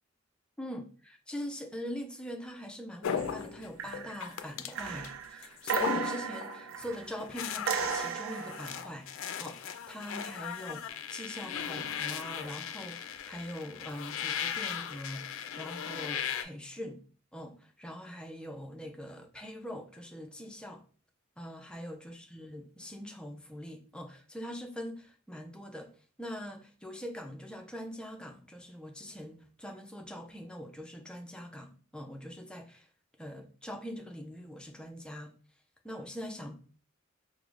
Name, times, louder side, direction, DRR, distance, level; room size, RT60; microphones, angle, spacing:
voice 1, 0.6-9.1 9.4-17.0 17.3-20.8 21.4-25.9 26.2-32.9 33.2-35.3 35.8-36.6, equal, 5° left, 0.4 m, -43 dB
sound 1, 3.0-5.1 5.4-6.6 6.9-16.4, left 8 dB, 80° left, 0.3 m, -37 dB
sound 2, 3.2-3.5 3.8-4.3 4.7-7.1 7.7-8.8 11.8-12.0, right 7 dB, 90° right, 0.4 m, -35 dB
4.7 x 2.0 x 2.4 m
head